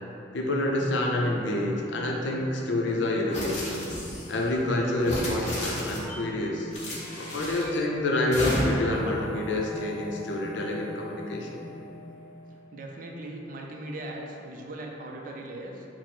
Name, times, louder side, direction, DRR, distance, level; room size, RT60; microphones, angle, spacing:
voice 1, 0.3-3.9 4.3-6.7 7.1-11.6, left 1 dB, 70° left, -1 dB, 0.5 m, -28 dB
sound 1, 0.7-13.5, left 1 dB, 5° right, 0.7 m, -45 dB
sound 2, 3.3-4.4 5.0-6.2 6.7-7.8 8.3-9.0, left 1 dB, 40° left, 0.8 m, -33 dB
sound 3, 8.9-13.1, left 3 dB, 25° right, 1.0 m, -47 dB
voice 2, 12.5-15.9, right 1 dB, 45° right, 1 dB, 0.4 m, -39 dB
4.5 x 2.0 x 4.1 m, 2.9 s
head